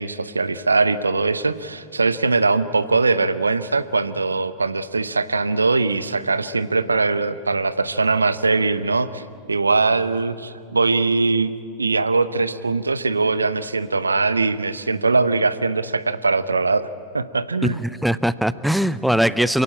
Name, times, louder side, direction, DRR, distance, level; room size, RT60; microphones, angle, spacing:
voice 1, 0.0-9.2 9.5-11.5 11.8-16.9 17.1-17.8, right 3 dB, 80° right, 15 dB, 0.8 m, -21 dB
voice 2, 17.6-19.6, equal, ahead, 17 dB, 0.6 m, -21 dB
27.0 x 16.5 x 8.8 m, 2.3 s
figure-of-eight pair, 90°, 0 cm